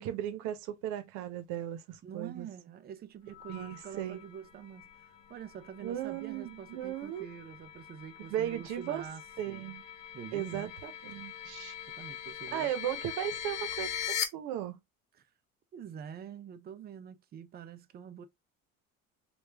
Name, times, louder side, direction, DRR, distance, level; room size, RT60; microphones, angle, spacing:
voice 1, 0.0-2.5 3.5-4.2 5.8-7.3 8.3-9.0 9.4-9.8 10.3-11.7 12.5-13.9 14.3-14.8, right 11 dB, 85° right, 0.8 m, -36 dB
voice 2, 2.0-9.7 10.1-10.7 12.0-12.7 15.1-15.2 15.7-18.3, right 8 dB, 35° right, 0.5 m, -46 dB
sound 1, 3.3-14.2, left 10 dB, 75° left, 0.9 m, -42 dB
3.4 x 2.4 x 3.2 m
cardioid pair, 130°, 29 cm